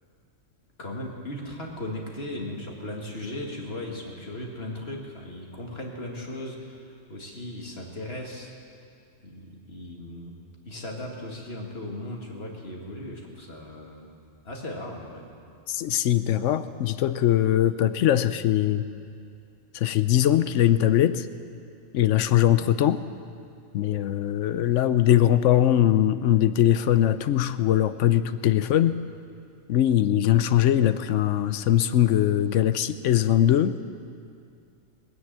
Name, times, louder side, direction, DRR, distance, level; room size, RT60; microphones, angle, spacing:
voice 1, 0.8-8.5 9.2-10.3 10.6-14.1 14.4-15.2, left 1 dB, 50° left, 0 dB, 2.2 m, -37 dB
voice 2, 15.7-18.9 19.7-21.3 21.9-23.0 23.7-29.0 29.7-33.7, left 11 dB, 70° left, 13 dB, 0.9 m, -21 dB
19.5 x 9.6 x 7.5 m, 2.4 s
omnidirectional pair, 1.4 m